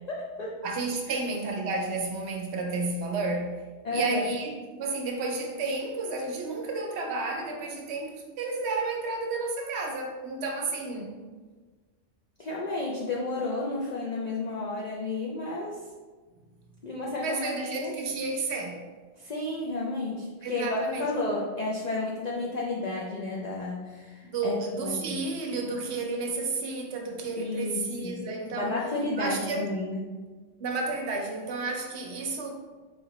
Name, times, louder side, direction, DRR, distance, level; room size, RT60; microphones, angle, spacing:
voice 1, 0.1-0.6 1.1-1.2 3.8-4.3 12.4-15.8 16.8-17.9 19.2-25.2 27.4-28.2 28.5-30.1, left 2 dB, 70° left, -3 dB, 0.4 m, -32 dB
voice 2, 0.6-3.5 3.9-11.1 17.2-18.8 20.4-21.1 24.2-28.7 29.2-29.6 30.6-32.5, right 3 dB, 65° right, 1 dB, 0.8 m, -31 dB
4.0 x 2.8 x 2.9 m, 1.4 s
omnidirectional pair, 1.3 m